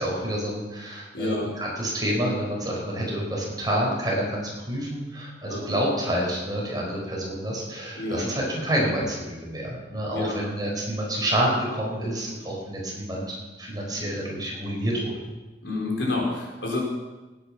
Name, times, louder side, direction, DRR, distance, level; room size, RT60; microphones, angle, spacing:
voice 1, 0.0-15.2, right 1 dB, 20° right, -3 dB, 4.6 m, -28 dB
voice 2, 1.1-1.5 5.5-5.7 8.0-8.2 10.1-10.4 15.6-16.8, left 2 dB, 85° left, -2 dB, 4.6 m, -28 dB
18.0 x 9.4 x 5.8 m, 1.2 s
head